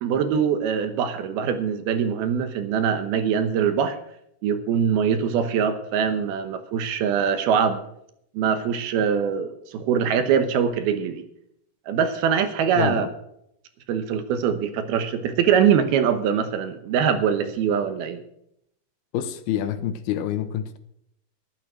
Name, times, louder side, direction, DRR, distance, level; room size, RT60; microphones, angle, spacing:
voice 1, 0.0-4.0 4.4-7.8 8.4-11.2 11.9-13.1 13.9-18.2, right 7 dB, 75° right, 9 dB, 2.8 m, -23 dB
voice 2, 12.8-13.1 19.1-20.8, left 10 dB, 80° left, 10 dB, 2.7 m, -27 dB
12.0 x 12.0 x 6.1 m, 0.74 s
omnidirectional pair, 4.7 m